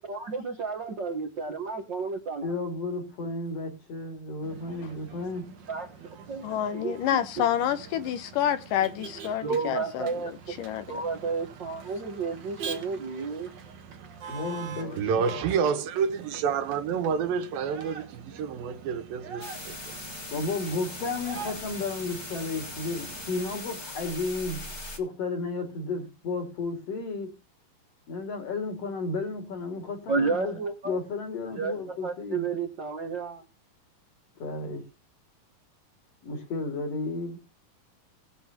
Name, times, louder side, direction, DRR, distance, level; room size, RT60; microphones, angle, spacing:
voice 1, 0.0-2.5 5.7-5.9 6.3-6.5 6.7-6.9 9.4-10.6 10.9-13.5 30.1-30.9 31.5-33.4, right 4 dB, 60° right, 1.2 m, -31 dB
voice 2, 2.4-5.6 14.3-15.8 20.3-24.6 25.0-27.4 28.1-32.5 34.4-34.9 36.2-37.4, left 3 dB, 50° left, 3.1 m, -33 dB
Motor vehicle (road), 4.4-23.6, right 6 dB, 75° right, 1.0 m, -44 dB
voice 3, 6.4-11.0, left 10 dB, 75° left, 2.4 m, -28 dB
voice 4, 15.0-19.8, right 6 dB, 90° right, 3.0 m, -28 dB
sound 1, 19.4-25.0, left 2 dB, 30° left, 1.4 m, -40 dB
20.5 x 7.9 x 2.9 m
omnidirectional pair, 4.0 m